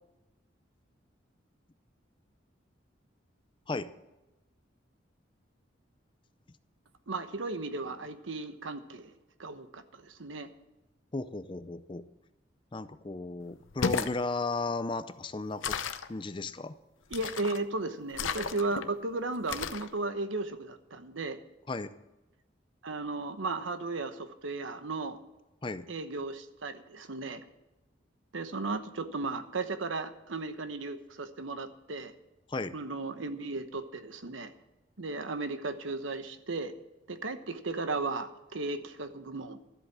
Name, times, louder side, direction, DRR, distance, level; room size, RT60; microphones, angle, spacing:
voice 1, 7.1-9.1 9.4-10.5 17.1-21.4 22.8-25.2 25.9-27.4 28.3-32.1 32.7-34.5 35.0-36.7 37.1-39.6, right 3 dB, 80° right, 10 dB, 1.0 m, -35 dB
voice 2, 11.1-12.0 12.7-15.8 16.1-16.8 21.7-21.9 25.6-25.9 32.5-32.7, left 3 dB, 25° left, 13 dB, 0.5 m, -35 dB
sound 1, 13.6-14.2 15.6-16.1 17.1-17.6 18.1-18.8 19.5-19.9, left 5 dB, 85° left, 0.7 m, -33 dB
13.0 x 8.0 x 7.3 m, 1.0 s
head